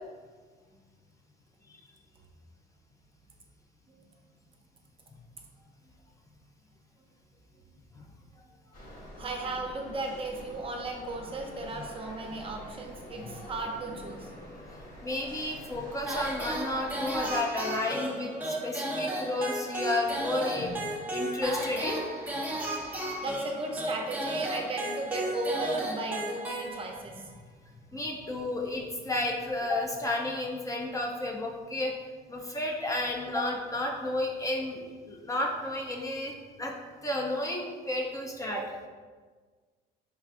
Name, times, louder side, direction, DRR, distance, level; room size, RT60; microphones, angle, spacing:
sound 1, 8.7-17.4, equal, 55° left, 1.1 m, -46 dB
voice 1, 9.2-14.3 23.2-27.3 38.5-38.6, right 2 dB, 35° right, 2 dB, 0.6 m, -36 dB
voice 2, 14.7-20.8 21.1-22.0 27.9-31.9 32.3-36.3 36.6-36.7 37.0-38.6, left 2 dB, 20° left, 0 dB, 0.5 m, -32 dB
sound 2, 16.1-27.2, right 1 dB, 10° right, 0.8 m, -34 dB
4.4 x 3.5 x 2.5 m, 1.5 s
cardioid pair, 110°, 17 cm